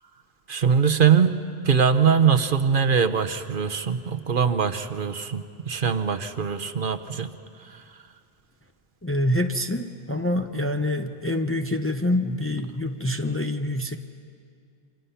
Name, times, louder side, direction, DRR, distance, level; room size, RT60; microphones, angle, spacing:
voice 1, 0.5-7.3 7.6-7.8, right 6 dB, 55° right, 9 dB, 1.0 m, -22 dB
voice 2, 9.0-14.0, left 1 dB, 15° left, 6 dB, 0.7 m, -26 dB
27.5 x 26.0 x 5.7 m, 2.2 s
omnidirectional pair, 1.1 m